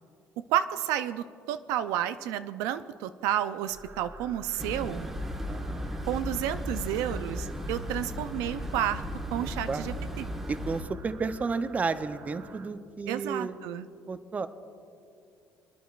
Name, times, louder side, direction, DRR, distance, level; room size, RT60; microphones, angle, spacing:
voice 1, 0.5-5.1 6.1-9.0 9.3-10.2 13.1-13.9, right 11 dB, 90° right, 11 dB, 0.4 m, -31 dB
sound 1, 3.7-12.7, right 3 dB, 45° right, 0.9 m, -49 dB
sound 2, 4.6-10.8, left 1 dB, 5° right, 1.2 m, -36 dB
voice 2, 5.5-5.9 9.4-9.8 10.5-13.6 14.1-14.5, right 4 dB, 30° right, 12 dB, 0.5 m, -32 dB
29.5 x 10.0 x 2.4 m, 2.5 s
cardioid pair, 95°, 5 cm